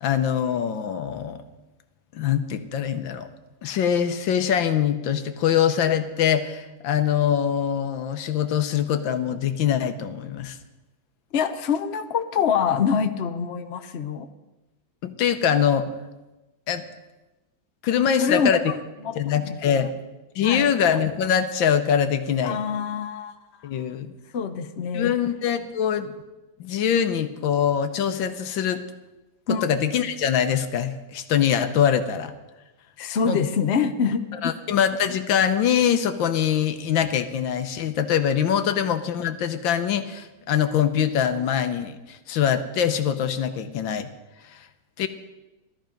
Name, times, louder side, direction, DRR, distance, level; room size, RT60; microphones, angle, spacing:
voice 1, 0.0-1.4 2.1-3.3 3.6-10.6 15.0-15.9 16.7-16.8 17.8-18.6 19.1-19.9 20.4-22.6 23.6-24.1 24.9-26.1 26.6-28.8 29.5-32.3 33.3-33.4 34.4-44.1 44.5-44.6 45.0-45.1, left 8 dB, 75° left, 9 dB, 1.6 m, -23 dB
voice 2, 11.3-14.3 18.2-18.7 19.0-19.8 20.4-20.7 22.4-23.3 24.3-25.1 29.5-29.6 33.0-34.5, left 6 dB, 55° left, 8 dB, 0.7 m, -25 dB
16.5 x 13.0 x 5.2 m, 1.1 s
omnidirectional pair, 2.2 m